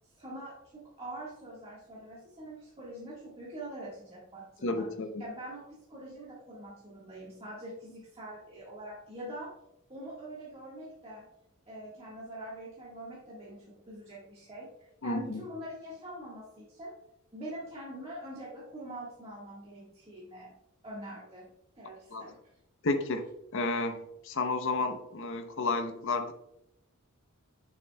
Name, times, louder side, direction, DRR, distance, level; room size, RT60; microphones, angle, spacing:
voice 1, 0.2-4.9 5.2-9.5 9.9-11.2 11.7-14.7 15.0-16.9 17.3-20.5 20.8-21.5 21.8-22.4, right 1 dB, 25° right, -7 dB, 1.5 m, -44 dB
voice 2, 4.6-5.2 15.0-15.4 22.1-22.2 22.8-23.2 23.5-26.3, left 3 dB, 60° left, 7 dB, 0.7 m, -31 dB
8.0 x 6.3 x 2.2 m, 0.81 s
head